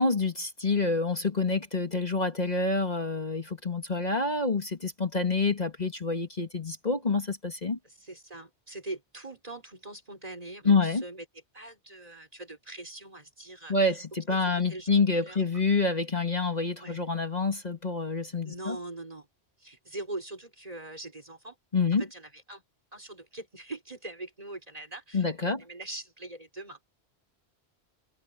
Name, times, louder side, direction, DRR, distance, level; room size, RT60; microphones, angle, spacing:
voice 1, 0.0-7.8 10.7-11.0 13.7-18.8 21.7-22.0 25.1-25.6, left 3 dB, 40° left, 2.0 m, -27 dB
voice 2, 7.8-11.2 11.5-14.0 14.3-15.4 16.8-17.0 18.4-19.3 19.6-21.6 22.0-22.6 22.9-26.8, right 2 dB, 35° right, 3.9 m, -42 dB
omnidirectional pair, 1.1 m